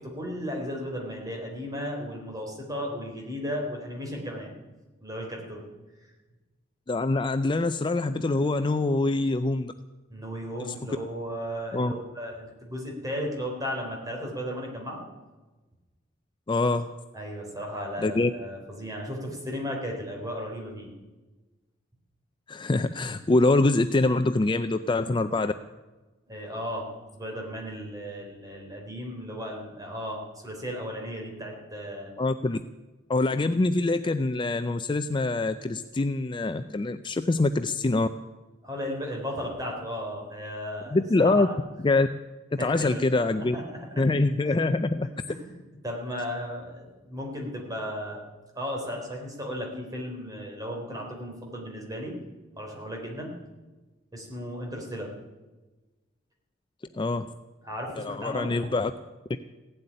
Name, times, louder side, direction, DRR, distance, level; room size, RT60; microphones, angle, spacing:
voice 1, 0.0-4.5 5.0-5.6 10.1-15.0 17.1-20.9 26.3-32.1 38.6-41.5 42.6-44.1 44.5-44.6 45.3-48.2 48.5-52.1 52.6-53.3 54.1-55.1 57.6-58.7, equal, 20° right, 0 dB, 3.8 m, -35 dB
voice 2, 6.9-9.7 10.6-10.7 11.7-11.9 16.5-16.9 18.0-18.3 22.5-25.5 32.2-32.6 33.1-38.1 40.9-41.5 41.8-42.1 42.6-43.6 44.0-45.1 57.0-57.3 58.0-58.9, left 2 dB, 25° left, 10 dB, 0.4 m, -24 dB
16.5 x 8.0 x 10.0 m, 1.2 s
head